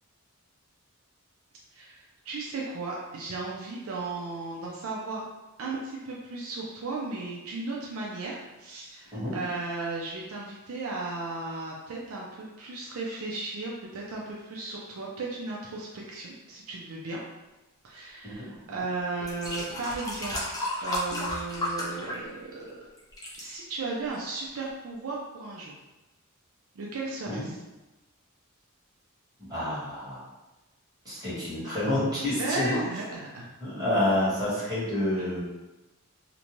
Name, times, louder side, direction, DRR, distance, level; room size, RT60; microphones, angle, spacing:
voice 1, 1.7-5.2 5.6-17.2 17.8-22.8 23.4-25.7 26.8-27.6 32.4-33.5 35.1-35.3, right 3 dB, 70° right, -3 dB, 0.4 m, -35 dB
sound 1, 18.6-18.7 19.2-22.7 23.0-23.4 24.1-24.2, left 1 dB, 15° left, 0.5 m, -33 dB
voice 2, 29.5-30.2 31.0-32.8 33.6-35.4, left 1 dB, 20° right, -10 dB, 1.3 m, -28 dB
2.6 x 2.1 x 3.0 m, 1.1 s
head